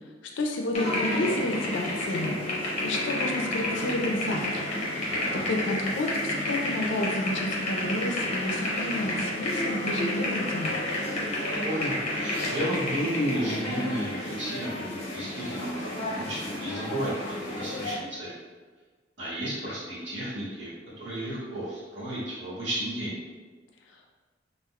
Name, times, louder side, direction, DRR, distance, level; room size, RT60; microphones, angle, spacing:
voice 1, 0.4-2.4 2.8-4.7 5.3-10.8, left 1 dB, 75° left, 2 dB, 0.5 m, -30 dB
sound 1, 0.7-18.0, left 1 dB, 35° left, 0.7 m, -31 dB
voice 2, 5.1-5.4 11.6-18.4 19.2-23.2, equal, 75° right, -9 dB, 1.3 m, -33 dB
3.5 x 2.4 x 2.2 m, 1.4 s
head